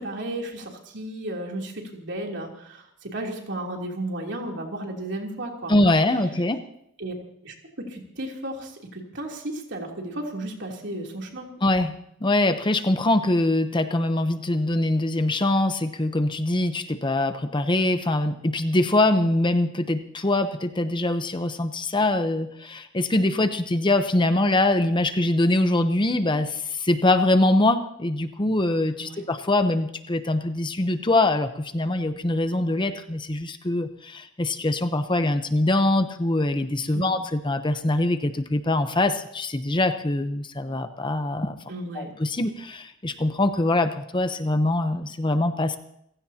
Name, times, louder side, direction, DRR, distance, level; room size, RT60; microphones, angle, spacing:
voice 1, 0.0-5.7 7.0-7.1 7.4-7.5 7.9-11.5 29.0-29.2 36.9-37.1 41.7-42.1, right 1 dB, 60° right, 0 dB, 3.2 m, -34 dB
voice 2, 5.7-6.6 11.6-11.9 12.2-41.6 41.9-45.8, left 2 dB, 25° left, 9 dB, 0.8 m, -23 dB
28.0 x 16.0 x 2.9 m, 0.73 s
head